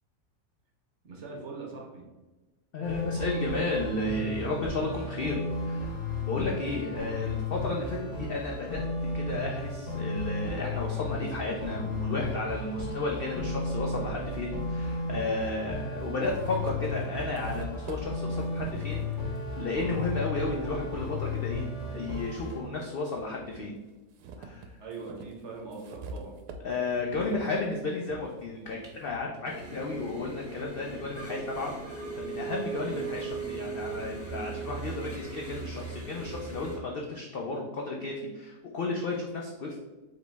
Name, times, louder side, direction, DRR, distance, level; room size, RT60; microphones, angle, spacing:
voice 1, 1.0-2.0 24.8-26.4, right 3 dB, 50° right, -1 dB, 1.1 m, -41 dB
voice 2, 2.7-21.6 21.9-23.7 24.4-24.8 26.6-39.8, left 3 dB, 80° left, -1 dB, 0.5 m, -33 dB
sound 1, 2.8-22.6, left 2 dB, 55° left, 1.0 m, -34 dB
sound 2, 14.1-14.2 15.3-15.4 15.8-21.0 21.5-22.7 23.1-29.3, right 3 dB, 85° right, 1.1 m, -46 dB
sound 3, 29.4-36.8, right 4 dB, 15° right, 0.7 m, -38 dB
5.0 x 3.1 x 3.3 m, 1.1 s
omnidirectional pair, 1.6 m